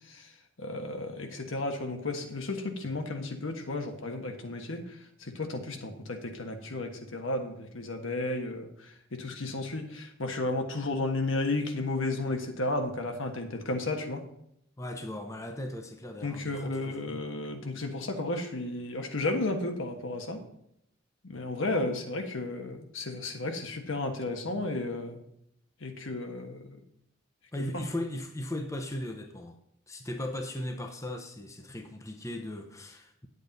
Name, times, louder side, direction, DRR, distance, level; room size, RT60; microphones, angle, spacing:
voice 1, 0.6-14.2 16.2-20.4 21.2-25.2 25.8-26.8 27.6-27.8, left 2 dB, 75° left, 4 dB, 1.3 m, -33 dB
voice 2, 14.8-17.2 27.5-29.6 29.9-33.3, left 1 dB, 15° left, 5 dB, 0.8 m, -37 dB
9.1 x 8.2 x 4.1 m, 0.74 s
head